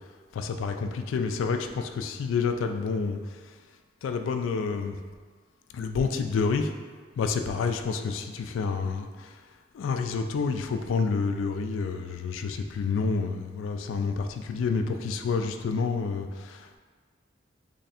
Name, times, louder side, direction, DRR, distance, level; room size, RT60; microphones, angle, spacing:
voice 1, 0.3-3.2 4.0-5.0 5.7-6.7 7.2-9.1 9.7-16.8, left 5 dB, 90° left, 6 dB, 0.3 m, -28 dB
3.2 x 2.5 x 4.2 m, 1.5 s
head